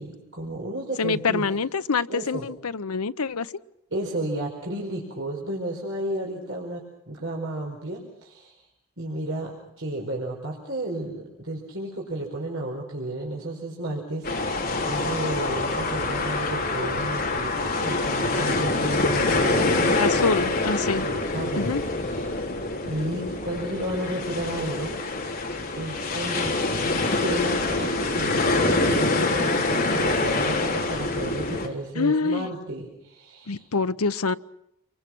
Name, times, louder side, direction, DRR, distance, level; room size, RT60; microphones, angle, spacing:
voice 1, 0.0-1.5 2.1-2.4 3.9-8.6 9.0-20.4 21.0-22.3 22.8-25.0 25.7-26.5 27.2-33.7, right 1 dB, 60° right, -2 dB, 4.9 m, -32 dB
voice 2, 1.0-3.5 19.9-21.1 21.6-21.8 32.0-32.5 33.5-34.3, left 4 dB, 85° left, 13 dB, 0.8 m, -25 dB
sound 1, 14.2-31.7, left 2 dB, 40° left, 3.9 m, -25 dB
29.0 x 23.0 x 6.2 m, 0.82 s
head